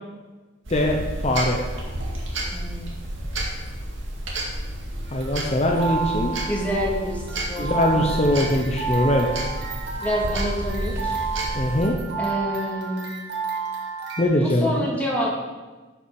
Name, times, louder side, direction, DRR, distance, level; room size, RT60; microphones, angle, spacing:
voice 1, 0.7-1.6 5.1-6.3 7.6-9.3 11.5-12.0 14.2-14.7, left 1 dB, 30° left, 1 dB, 0.8 m, -21 dB
sound 1, 0.7-11.9, right 1 dB, 70° right, 2.0 m, -31 dB
voice 2, 2.5-3.0 6.5-8.1 10.0-11.2 12.2-13.2 14.4-15.3, equal, 10° left, -4 dB, 2.1 m, -28 dB
sound 2, 5.1-14.2, right 5 dB, 55° right, 1.9 m, -31 dB
12.0 x 5.9 x 4.7 m, 1.3 s
head